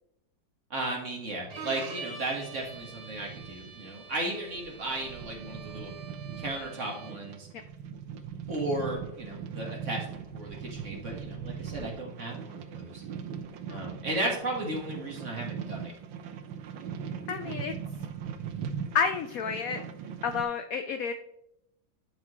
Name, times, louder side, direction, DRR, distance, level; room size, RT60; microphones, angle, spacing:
voice 1, 0.7-5.9 6.4-7.5 8.5-10.1 10.3-13.0 13.7-15.9, right 2 dB, 40° right, 0 dB, 1.8 m, -35 dB
sound 1, 1.2-20.4, right 7 dB, 90° right, 1.5 m, -40 dB
Bowed string instrument, 1.5-7.3, right 4 dB, 60° right, 2.0 m, -45 dB
voice 2, 17.3-17.7 18.9-19.8 20.2-21.1, left 6 dB, 85° left, 8 dB, 0.7 m, -30 dB
11.0 x 4.4 x 3.1 m, 0.79 s
omnidirectional pair, 2.1 m